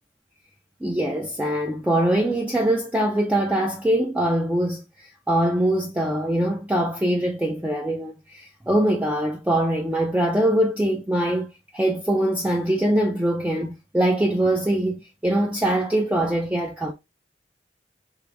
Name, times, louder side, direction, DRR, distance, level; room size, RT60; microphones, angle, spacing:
voice 1, 0.8-16.9, right 1 dB, 10° right, 0.4 m, -23 dB
4.7 x 2.5 x 3.3 m
head